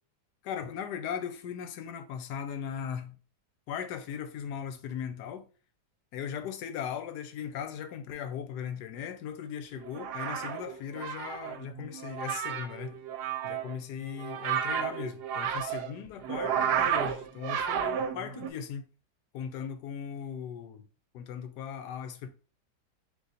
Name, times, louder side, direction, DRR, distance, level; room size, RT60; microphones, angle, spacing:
voice 1, 0.4-3.1 3.7-5.5 6.1-13.0 13.4-18.9 19.3-20.8 21.1-22.3, left 8 dB, 85° left, 1.2 m, -38 dB
sound 1, 9.8-18.5, right 8 dB, 85° right, 1.2 m, -32 dB
3.8 x 2.9 x 4.0 m
omnidirectional pair, 1.7 m